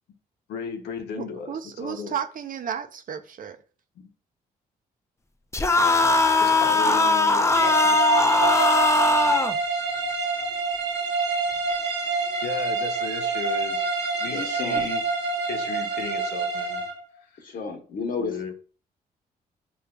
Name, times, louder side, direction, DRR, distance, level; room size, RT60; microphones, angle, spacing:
voice 1, 0.5-2.1 4.0-4.1 6.4-7.5 7.8-9.1 12.4-13.9 14.2-15.0 15.5-16.8 17.2-17.4 18.2-18.5, left 6 dB, 85° left, 0.6 m, -36 dB
voice 2, 1.2-3.6, right 8 dB, 55° right, 0.5 m, -33 dB
sound 1, 5.5-9.5, left 2 dB, 15° left, 0.4 m, -20 dB
sound 2, 7.5-17.0, right 4 dB, 85° right, 1.1 m, -27 dB
voice 3, 14.2-14.9 17.4-18.4, left 4 dB, 55° left, 1.1 m, -32 dB
6.6 x 2.3 x 2.2 m
supercardioid pair, 65°, 17 cm